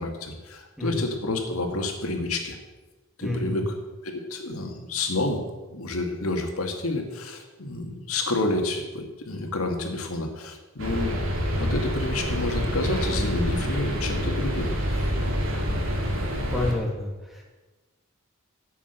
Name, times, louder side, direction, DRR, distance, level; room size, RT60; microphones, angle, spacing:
voice 1, 0.0-2.6 3.2-3.8 4.0-5.4 5.7-15.1, left 2 dB, 85° left, 3 dB, 2.1 m, -29 dB
voice 2, 3.2-3.6 16.5-17.4, left 2 dB, ahead, -1 dB, 2.3 m, -29 dB
sound 1, 10.8-16.7, equal, 70° right, 3.0 m, -27 dB
11.0 x 8.2 x 8.0 m, 1.2 s
head